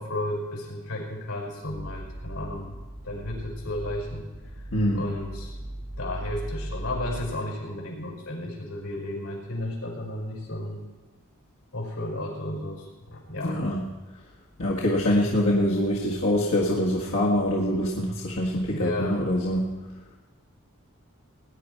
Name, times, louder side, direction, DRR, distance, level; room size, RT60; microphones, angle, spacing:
voice 1, 0.0-2.8 3.0-4.3 4.9-5.5 6.0-10.8 11.7-13.6 18.7-19.2, left 1 dB, 85° left, -1 dB, 5.1 m, -33 dB
sound 1, 1.6-7.4, right 1 dB, 40° right, 2.3 m, -38 dB
voice 2, 4.7-5.1 13.4-13.9 14.6-19.7, left 1 dB, 70° left, -5 dB, 1.8 m, -24 dB
19.5 x 10.5 x 4.6 m, 1.2 s
head